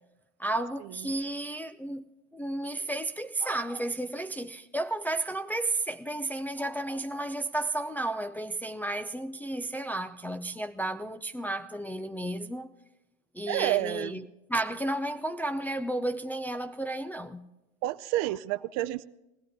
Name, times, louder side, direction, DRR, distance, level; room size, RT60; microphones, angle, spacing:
voice 1, 0.4-12.7 13.3-17.5, right 2 dB, 5° left, 0.5 m, -33 dB
voice 2, 13.5-14.3 17.8-19.0, right 16 dB, 50° right, 0.6 m, -29 dB
20.5 x 16.0 x 3.4 m
hypercardioid pair, 95°, 35 cm